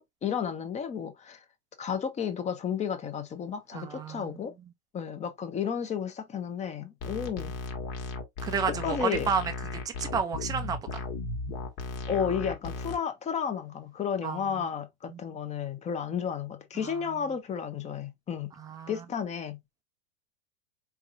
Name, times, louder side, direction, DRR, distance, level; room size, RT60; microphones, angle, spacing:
voice 1, 0.0-1.4 1.8-4.5 4.9-7.5 8.8-9.3 12.1-18.5 18.9-19.6, left 7 dB, 15° left, 0.7 m, -32 dB
voice 2, 3.7-4.4 8.4-9.5 9.8-11.0 14.2-14.6 15.1-15.2 16.8-17.2 18.6-19.0, right 6 dB, 10° right, 0.3 m, -32 dB
sound 1, 7.0-13.0, left 3 dB, 50° left, 1.5 m, -36 dB
4.5 x 3.4 x 2.5 m
hypercardioid pair, 120°, 44 cm